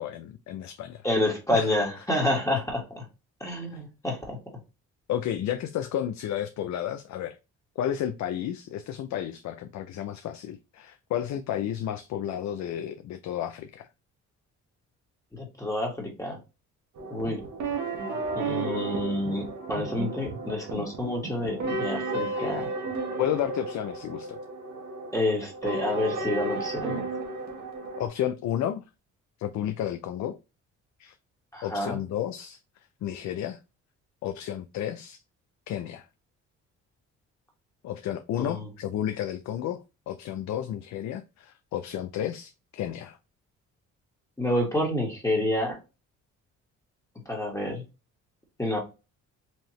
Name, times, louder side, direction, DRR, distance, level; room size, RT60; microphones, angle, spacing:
voice 1, 0.0-1.1 1.5-1.8 3.7-3.8 5.1-7.4 7.8-13.9 23.2-24.4 28.0-28.8 29.4-30.4 31.0-31.2 31.6-32.6 33.0-33.6 34.2-35.2 35.7-36.1 37.8-43.2, left 10 dB, 65° left, 0.5 m, -32 dB
voice 2, 1.0-3.1 3.4-4.4 15.3-16.4 17.1-17.4 18.4-22.7 25.1-27.1 31.5-32.0 38.4-38.7 44.4-45.8 47.3-47.8 48.6-48.8, left 1 dB, 10° left, 1.7 m, -28 dB
sound 1, 17.0-28.1, right 3 dB, 70° right, 1.4 m, -33 dB
4.4 x 2.8 x 3.1 m
cardioid pair, 90°, 30 cm